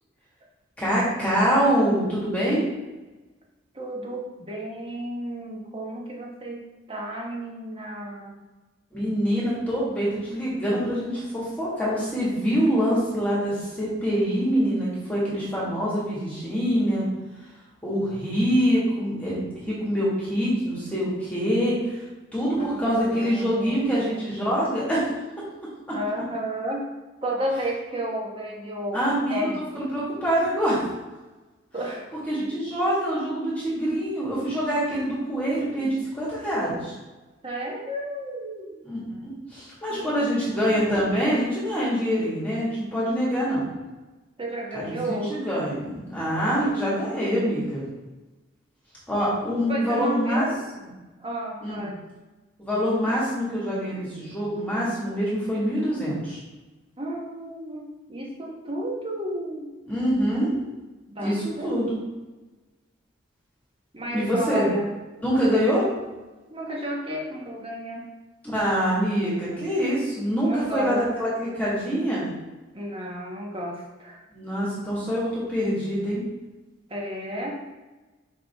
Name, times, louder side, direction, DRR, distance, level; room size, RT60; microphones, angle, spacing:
voice 1, 0.8-2.6 8.9-17.0 17.8-22.0 22.3-25.1 25.9-26.0 28.9-30.8 32.3-36.9 38.8-43.7 44.7-47.8 49.1-50.4 51.6-51.9 52.6-56.4 59.9-60.5 61.2-62.0 64.1-64.6 65.2-65.9 68.5-72.3 74.3-76.2, equal, 10° left, -8 dB, 1.7 m, -25 dB
voice 2, 3.7-8.4 22.5-24.3 25.9-26.9 27.2-29.0 29.3-29.6 31.7-32.1 32.4-32.5 37.4-38.8 39.9-41.1 44.4-45.4 46.6-46.7 49.7-50.6 51.2-52.0 57.0-59.7 61.1-61.9 63.9-64.9 66.5-68.1 70.4-71.0 72.7-74.2 76.9-77.6, equal, 30° right, -1 dB, 1.1 m, -32 dB
5.5 x 5.0 x 3.5 m, 1.2 s
head